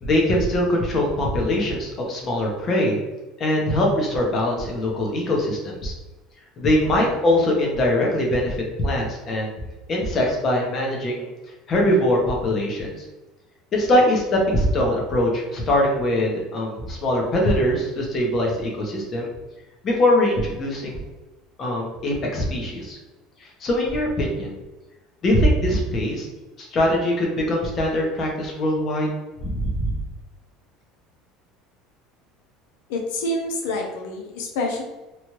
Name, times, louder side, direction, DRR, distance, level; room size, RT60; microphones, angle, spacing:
voice 1, 0.0-3.0 3.4-5.9 6.6-9.5 9.9-11.3 11.7-12.9 13.7-19.3 19.8-21.0 21.6-23.0 23.4-24.5 25.2-26.3 26.6-29.1 29.4-29.9, left 1 dB, 35° left, -1 dB, 0.9 m, -22 dB
voice 2, 32.9-34.8, left 2 dB, 85° left, 0 dB, 0.6 m, -27 dB
3.0 x 2.5 x 3.1 m, 1.1 s
supercardioid pair, 125°, 0 cm